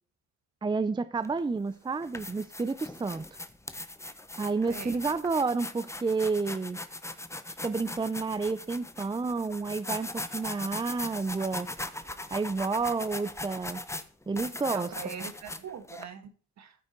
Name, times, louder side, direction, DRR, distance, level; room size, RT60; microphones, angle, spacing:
voice 1, 0.6-3.2 4.4-6.8 7.6-11.7 12.3-13.8 14.3-15.2, right 4 dB, 15° right, 0.5 m, -30 dB
sound 1, 1.2-1.4 1.9-16.0, left 2 dB, 10° left, 1.0 m, -40 dB
voice 2, 4.7-5.0 14.7-16.3 16.6-16.7, right 7 dB, 65° right, 1.9 m, -41 dB
13.5 x 6.2 x 4.5 m
cardioid pair, 90°, 30 cm